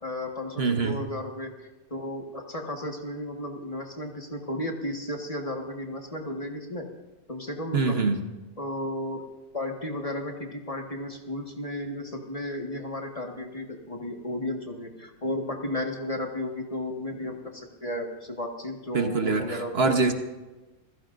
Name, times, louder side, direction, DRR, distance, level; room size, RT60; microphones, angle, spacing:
voice 1, 0.0-6.9 7.3-8.0 8.6-9.2 9.5-19.9, left 1 dB, 30° left, 2 dB, 1.7 m, -34 dB
voice 2, 0.6-1.0 7.7-8.2 18.9-20.1, right 4 dB, 55° right, 6 dB, 1.3 m, -24 dB
26.5 x 15.5 x 2.6 m, 1.1 s
omnidirectional pair, 1.3 m